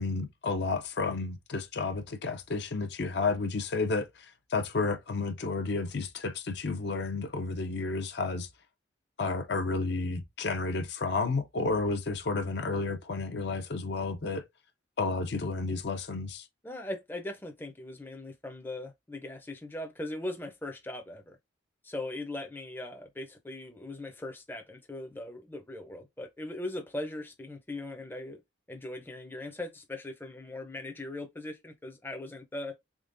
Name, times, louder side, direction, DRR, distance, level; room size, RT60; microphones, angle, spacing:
voice 1, 0.0-4.1 4.5-8.5 9.2-14.4 15.0-16.4, left 3 dB, 60° left, 0.5 m, -31 dB
voice 2, 16.6-21.4 21.8-28.4 28.7-32.7, left 1 dB, 10° left, 0.5 m, -39 dB
3.6 x 3.5 x 2.5 m
head